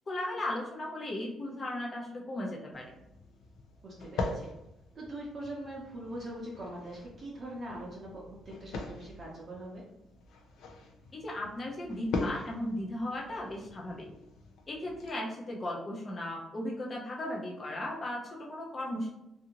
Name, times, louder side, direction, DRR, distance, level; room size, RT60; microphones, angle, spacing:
voice 1, 0.1-2.9 11.1-14.1 14.7-19.1, left 1 dB, 30° left, -2 dB, 0.6 m, -36 dB
sound 1, 2.7-15.1, left 3 dB, 85° left, 0.4 m, -42 dB
voice 2, 3.8-4.5 4.9-9.8, right 1 dB, 35° right, -5 dB, 0.6 m, -42 dB
2.6 x 2.5 x 2.8 m, 0.89 s
cardioid pair, 145°, 0 cm